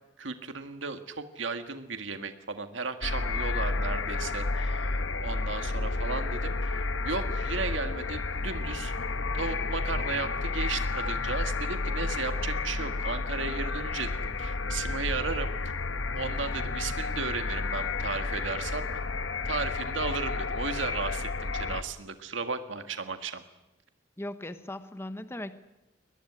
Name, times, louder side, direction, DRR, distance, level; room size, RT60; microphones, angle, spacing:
voice 1, 0.2-8.9 9.3-15.5 16.2-19.0 19.5-23.4, right 4 dB, 80° right, 8 dB, 1.8 m, -35 dB
sound 1, 3.0-21.8, left 3 dB, 90° left, 1.2 m, -31 dB
voice 2, 24.2-25.6, left 1 dB, 15° left, 11 dB, 1.0 m, -38 dB
22.5 x 20.5 x 10.0 m, 1.0 s
head